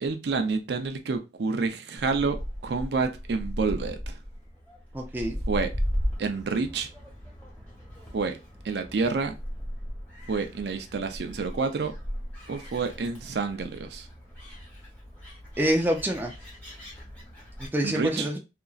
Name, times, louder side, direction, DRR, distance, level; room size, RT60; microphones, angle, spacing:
voice 1, 0.0-2.4 2.6-4.2 5.5-5.7 6.2-6.9 8.1-8.4 8.6-9.3 10.3-11.9 12.5-14.1 17.8-18.3, right 4 dB, 70° right, 0.4 m, -28 dB
Gull seagull, 2.0-17.7, equal, 10° left, 1.1 m, -37 dB
voice 2, 4.9-5.4 15.6-16.3 17.6-18.4, equal, 10° right, 0.4 m, -26 dB
2.9 x 2.5 x 2.3 m
head